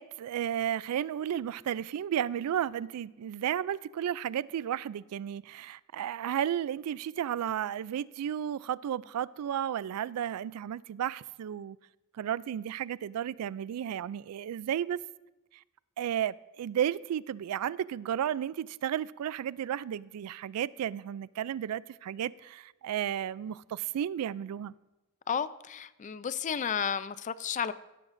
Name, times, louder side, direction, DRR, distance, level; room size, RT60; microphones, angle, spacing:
voice 1, 0.0-11.8 12.2-15.0 16.0-24.7, right 10 dB, 90° right, 0.3 m, -33 dB
voice 2, 25.3-27.7, left 7 dB, 35° left, 0.4 m, -32 dB
16.5 x 12.5 x 2.6 m
head